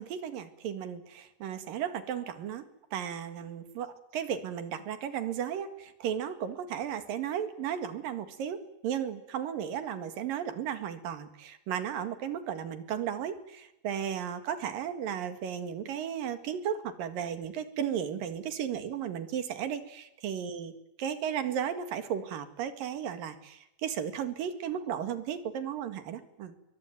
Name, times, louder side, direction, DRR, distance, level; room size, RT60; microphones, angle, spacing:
voice 1, 0.0-8.6 8.8-20.7 21.0-26.6, right 9 dB, 70° right, 9 dB, 3.6 m, -35 dB
27.5 x 22.5 x 9.3 m, 0.88 s
omnidirectional pair, 4.3 m